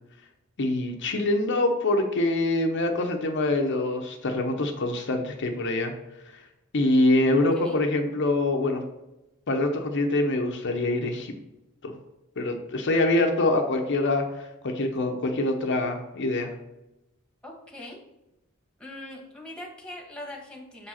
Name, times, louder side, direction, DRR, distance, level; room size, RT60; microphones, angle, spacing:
voice 1, 0.6-5.9 6.7-8.8 9.5-11.3 11.8-11.9 12.4-16.5, left 2 dB, 55° left, 3 dB, 0.7 m, -25 dB
voice 2, 7.3-7.8 17.4-18.0 18.8-20.9, left 1 dB, 5° left, -1 dB, 1.4 m, -42 dB
6.7 x 4.7 x 4.2 m, 0.95 s
head